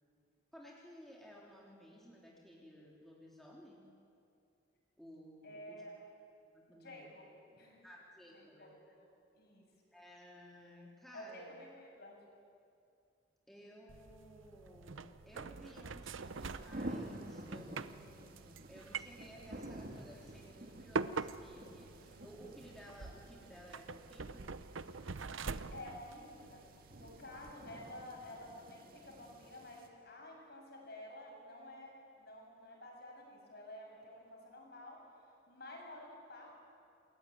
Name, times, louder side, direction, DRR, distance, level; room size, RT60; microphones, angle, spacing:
voice 1, 0.5-3.8 5.0-5.8 6.5-7.1 7.8-8.7 9.9-11.5 13.5-24.6 27.3-27.5, equal, ahead, -4 dB, 3.7 m, -56 dB
voice 2, 5.4-5.9 6.8-7.8 8.3-8.7 9.3-9.6 11.1-12.2 25.1-25.4 25.7-26.6 26.9-36.5, left 1 dB, 55° left, 0 dB, 7.7 m, -51 dB
sound 1, 13.9-27.5, right 4 dB, 90° right, 0.8 m, -45 dB
sound 2, 16.2-29.9, right 1 dB, 50° right, 2.4 m, -50 dB
27.0 x 22.0 x 9.6 m, 2.5 s
head